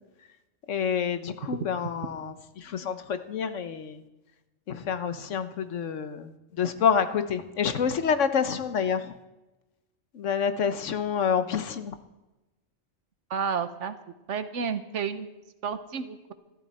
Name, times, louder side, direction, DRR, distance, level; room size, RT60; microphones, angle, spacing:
voice 1, 0.7-2.3 2.7-4.0 4.7-6.3 6.6-9.0 10.2-11.9, left 7 dB, 80° left, 10 dB, 1.3 m, -27 dB
voice 2, 13.3-14.0 14.3-15.3 15.6-16.3, right 6 dB, 75° right, 10 dB, 1.3 m, -31 dB
20.5 x 13.5 x 4.3 m, 1.0 s
omnidirectional pair, 1.3 m